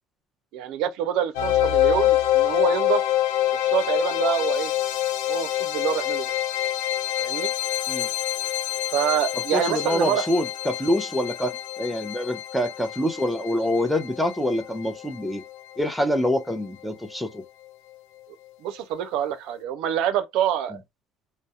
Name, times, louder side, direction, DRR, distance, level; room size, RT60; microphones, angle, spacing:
voice 1, 0.5-3.0 3.5-4.7 5.3-6.3 7.2-7.5 8.9-10.3 18.6-20.8, right 10 dB, 75° right, 0.4 m, -26 dB
sound 1, 1.3-16.3, left 13 dB, 90° left, 0.4 m, -26 dB
voice 2, 9.5-15.4 15.8-17.4, left 1 dB, ahead, 0.5 m, -26 dB
2.2 x 2.0 x 2.7 m
cardioid pair, 110°, 0 cm